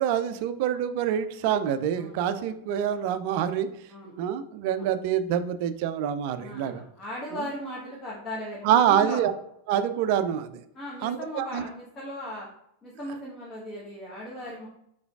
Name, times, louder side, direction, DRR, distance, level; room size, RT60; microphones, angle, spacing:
voice 1, 0.0-3.7 4.2-6.8 7.3-7.4 8.6-9.3 9.7-10.6 11.0-11.6, right 9 dB, 45° right, 11 dB, 0.4 m, -26 dB
voice 2, 1.9-2.5 3.9-4.1 4.7-4.8 6.4-9.2 10.7-12.5 12.8-14.7, left 1 dB, 25° left, -4 dB, 1.1 m, -38 dB
4.9 x 3.9 x 2.4 m, 0.77 s
figure-of-eight pair, 90°, 0 cm